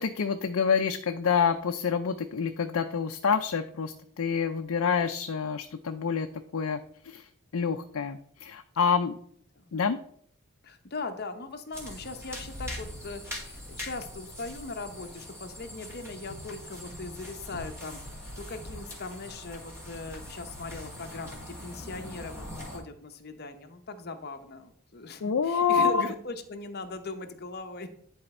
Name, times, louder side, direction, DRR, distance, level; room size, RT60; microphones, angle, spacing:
voice 1, 0.0-6.3 6.5-6.8 7.1-7.2 7.5-9.1 9.7-10.0 25.2-26.1, left 6 dB, 70° left, 7 dB, 0.5 m, -27 dB
voice 2, 10.6-27.9, left 3 dB, 45° left, 7 dB, 0.8 m, -40 dB
sound 1, 11.7-22.8, left 1 dB, 10° right, 2.2 m, -42 dB
10.5 x 4.3 x 4.3 m, 0.63 s
head